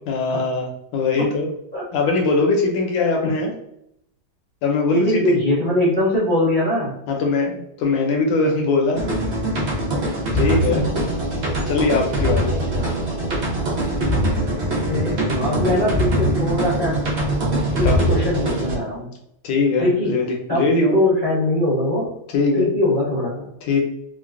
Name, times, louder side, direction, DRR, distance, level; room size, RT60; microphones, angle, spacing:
voice 1, 0.1-1.5 1.9-3.5 4.6-5.4 7.1-9.1 10.3-10.8 11.7-12.6 17.8-17.9 19.4-21.0 22.3-22.7 23.6-23.8, left 3 dB, 70° left, 1 dB, 1.3 m, -21 dB
voice 2, 4.9-7.0 10.4-11.3 12.7-13.0 14.6-17.0 17.7-19.1 19.8-20.1 20.5-20.7 20.9-22.1 22.6-23.4, left 1 dB, 40° left, -9 dB, 0.6 m, -22 dB
sound 1, 8.9-18.8, right 1 dB, 80° right, 0.5 m, -22 dB
3.7 x 2.1 x 2.4 m, 0.76 s
omnidirectional pair, 2.3 m